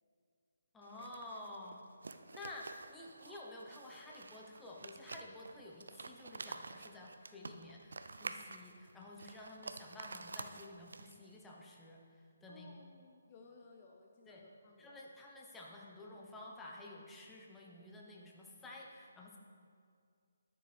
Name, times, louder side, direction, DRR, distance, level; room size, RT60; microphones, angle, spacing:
voice 1, 0.7-1.8 2.3-12.0 12.4-12.7 14.3-14.4 14.8-19.4, left 1 dB, 10° left, -2 dB, 1.0 m, -51 dB
sound 1, 0.8-11.3, right 3 dB, 75° right, 0.5 m, -49 dB
voice 2, 12.5-15.0, left 3 dB, 30° left, 1 dB, 0.7 m, -59 dB
12.5 x 6.9 x 3.5 m, 2.3 s
figure-of-eight pair, 150°, 0 cm